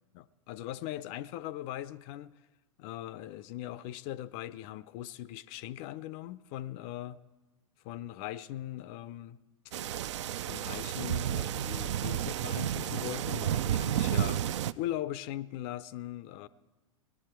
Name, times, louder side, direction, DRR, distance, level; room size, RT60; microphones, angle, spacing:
voice 1, 0.1-2.3 2.8-7.2 7.8-9.4 10.5-16.5, left 13 dB, 40° left, 0.4 m, -40 dB
sound 1, 9.7-14.7, right 11 dB, 60° right, 0.4 m, -31 dB
17.5 x 11.0 x 4.5 m
figure-of-eight pair, 100°, 17 cm